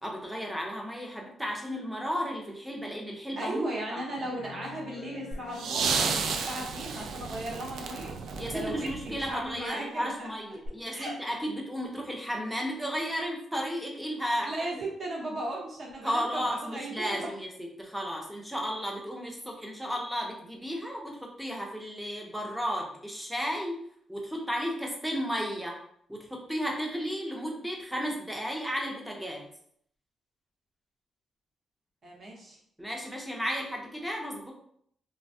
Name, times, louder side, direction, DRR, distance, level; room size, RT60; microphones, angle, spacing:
voice 1, 0.0-4.0 8.4-14.8 16.0-23.8 24.1-25.8 26.1-29.5 32.8-34.5, equal, 5° right, -1 dB, 0.6 m, -34 dB
sound 1, 2.0-2.1 2.7-2.8 4.2-6.6 8.4-8.5, left 6 dB, 65° left, 0.4 m, -47 dB
voice 2, 3.4-8.2 8.5-10.3 10.9-11.2 14.4-17.3 32.0-32.6, right 1 dB, 45° right, -2 dB, 0.8 m, -37 dB
sound 2, 5.3-9.5 10.7-10.8, right 5 dB, 80° right, 0.3 m, -32 dB
3.2 x 2.1 x 2.7 m, 0.68 s
cardioid pair, 140°, 0 cm